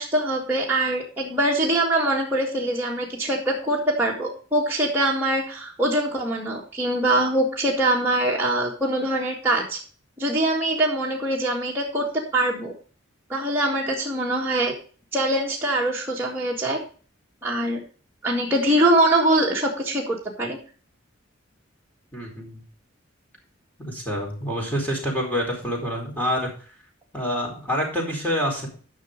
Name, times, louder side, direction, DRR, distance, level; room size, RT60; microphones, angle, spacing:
voice 1, 0.0-9.8 10.2-12.1 12.3-12.7 13.3-14.7 15.1-16.8 17.4-17.8 18.2-20.6, right 1 dB, 10° right, -4 dB, 1.9 m, -23 dB
voice 2, 22.1-22.6 23.8-26.5 27.1-28.7, equal, 10° left, -1 dB, 4.3 m, -27 dB
11.0 x 6.3 x 5.1 m, 0.40 s
head